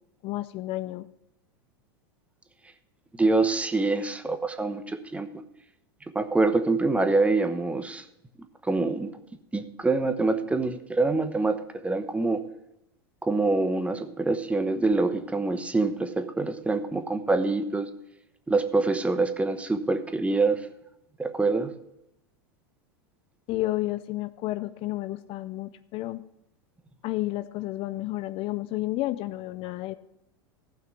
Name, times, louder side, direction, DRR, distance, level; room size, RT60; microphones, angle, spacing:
voice 1, 0.2-1.1 23.5-26.2 27.0-29.9, left 17 dB, 45° left, 14 dB, 0.6 m, -31 dB
voice 2, 3.2-5.3 6.1-8.0 8.6-9.1 9.5-11.6 11.8-12.4 13.2-17.9 18.5-20.6 21.2-21.7, right 3 dB, 10° right, 9 dB, 1.0 m, -25 dB
15.0 x 5.9 x 6.0 m, 0.84 s
hypercardioid pair, 100°, 13 cm